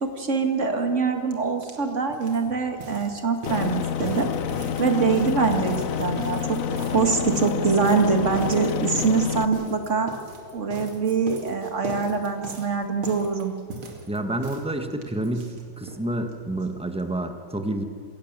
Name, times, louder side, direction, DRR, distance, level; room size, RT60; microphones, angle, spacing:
voice 1, 0.0-4.3 4.8-6.6 6.9-10.1 10.5-13.5, right 5 dB, 35° right, 5 dB, 2.1 m, -24 dB
sound 1, 1.3-1.4 1.6-16.0 16.3-16.4 16.6-16.7 17.0-17.1, right 2 dB, 80° right, 3.2 m, -39 dB
Aircraft, 3.5-9.5, left 8 dB, 65° left, 0.8 m, -28 dB
voice 2, 14.1-15.5 15.8-17.8, right 1 dB, 5° right, 6 dB, 1.2 m, -28 dB
26.5 x 17.0 x 7.5 m, 2.1 s
omnidirectional pair, 2.3 m